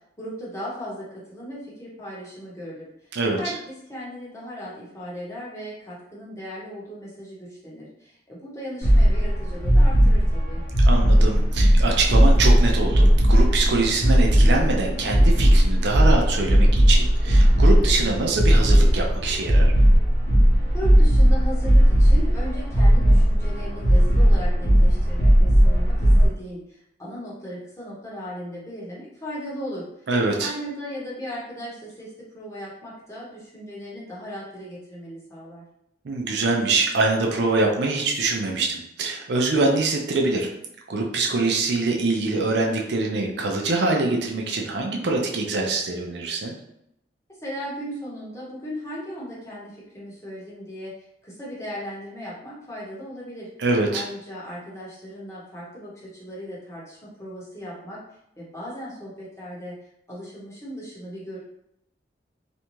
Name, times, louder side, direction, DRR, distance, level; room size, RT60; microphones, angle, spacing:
voice 1, 0.2-2.9 3.4-10.6 20.7-30.1 30.4-35.7 47.4-53.5 53.9-58.0 58.4-59.8 60.1-61.4, equal, 15° left, -7 dB, 0.8 m, -37 dB
sound 1, 8.8-26.3, equal, 55° left, 0.9 m, -17 dB
voice 2, 10.8-19.7 30.1-30.5 36.0-40.5 40.9-46.5 53.6-54.0, right 3 dB, 65° right, 0 dB, 0.5 m, -24 dB
2.6 x 2.2 x 3.0 m, 0.77 s
head